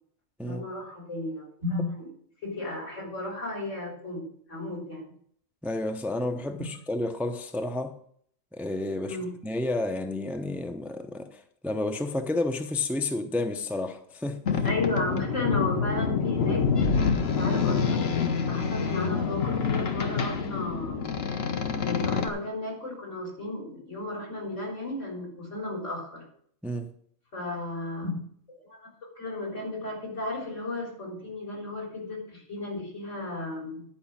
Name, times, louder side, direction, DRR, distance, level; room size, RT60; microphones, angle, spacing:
voice 1, 0.4-2.1 2.4-5.1 6.6-6.7 9.0-9.3 14.6-16.7 17.3-21.2 21.8-26.2 27.3-28.2 28.5-33.9, left 2 dB, 85° left, 4.1 m, -34 dB
voice 2, 5.6-8.0 8.5-9.2 9.4-14.4 26.6-26.9, left 2 dB, ahead, 0.6 m, -31 dB
Boat Water vehicle, 14.5-22.3, left 5 dB, 60° left, 1.2 m, -27 dB
10.5 x 5.2 x 7.2 m
omnidirectional pair, 1.2 m